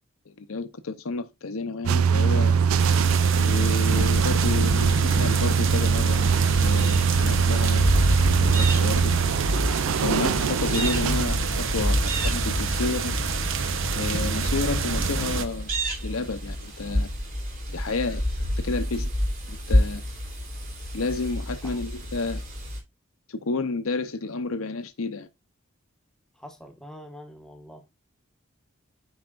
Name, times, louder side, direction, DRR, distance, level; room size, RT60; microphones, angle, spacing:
voice 1, 0.3-2.6 3.4-7.9 8.2-9.1 10.0-13.2 13.9-15.7 16.0-17.1 17.7-18.2 18.6-19.1 19.5-20.0 20.9-22.4 23.3-25.3, left 3 dB, 80° left, 0.7 m, -30 dB
sound 1, 1.8-11.2, right 6 dB, 85° right, 0.4 m, -22 dB
sound 2, 2.8-15.5, right 4 dB, 65° right, 0.9 m, -28 dB
sound 3, 6.3-22.8, equal, 45° right, 3.1 m, -29 dB
voice 2, 26.4-27.9, equal, 5° left, 1.4 m, -45 dB
9.4 x 5.5 x 2.5 m
head